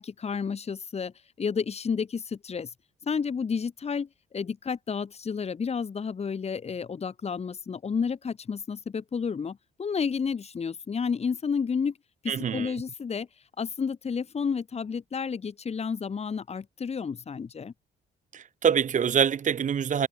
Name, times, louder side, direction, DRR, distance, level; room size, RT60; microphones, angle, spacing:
voice 1, 0.0-2.7 3.0-11.9 12.2-13.3 13.6-17.7, left 6 dB, 35° left, 1.2 m, -31 dB
voice 2, 12.3-12.7 18.3-20.1, right 8 dB, 40° right, 0.7 m, -25 dB
cardioid pair, 90°, 19 cm